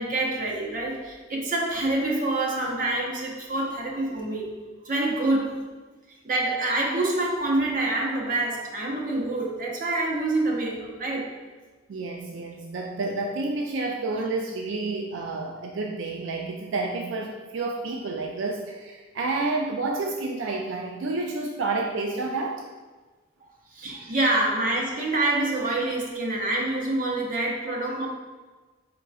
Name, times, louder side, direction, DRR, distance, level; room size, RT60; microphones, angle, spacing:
voice 1, 0.0-4.5 4.8-5.6 6.2-11.3 23.7-28.1, right 2 dB, 45° right, -2 dB, 0.8 m, -26 dB
voice 2, 11.9-22.6 23.8-24.1, right 3 dB, 80° right, 1 dB, 0.4 m, -30 dB
4.7 x 3.8 x 2.3 m, 1.3 s
head